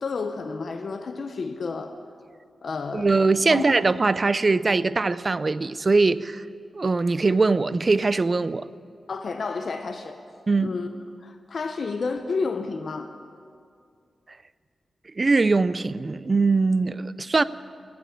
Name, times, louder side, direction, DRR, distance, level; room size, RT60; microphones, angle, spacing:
voice 1, 0.0-2.0 2.6-3.1 3.5-3.6 9.1-10.2 10.6-10.9 11.2-13.1, left 4 dB, 50° left, 0.6 m, -30 dB
voice 2, 2.9-6.5 6.7-8.7 10.5-10.7 15.2-17.4, right 3 dB, 30° right, 0.3 m, -21 dB
17.0 x 8.6 x 8.9 m
wide cardioid pair, 170°, 0 cm